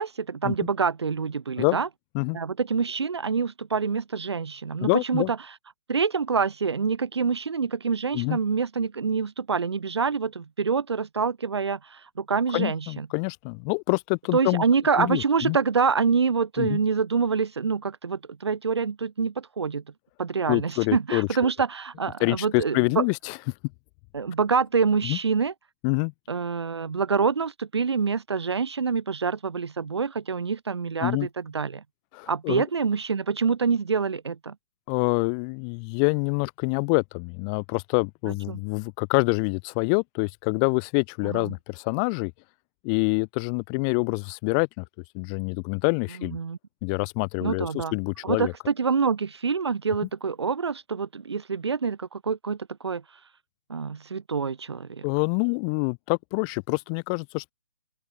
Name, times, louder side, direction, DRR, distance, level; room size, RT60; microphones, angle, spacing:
voice 1, 0.0-1.9 2.3-5.4 5.9-13.1 14.3-19.8 20.2-23.0 24.1-25.5 26.3-31.8 32.3-34.5 38.2-38.6 41.2-41.5 46.2-46.6 47.4-47.9 48.2-53.0 53.7-55.1, right 5 dB, 75° right, 1.5 m, -26 dB
voice 2, 4.8-5.3 8.1-8.4 12.5-14.6 15.0-15.6 16.6-16.8 20.5-21.5 22.2-23.4 25.0-25.2 25.8-26.1 31.0-31.3 32.1-32.6 34.9-42.3 42.8-44.8 45.1-46.4 46.8-48.5 55.0-57.5, left 40 dB or more, 15° left, 0.6 m, -26 dB
open air
hypercardioid pair, 160°, 14 cm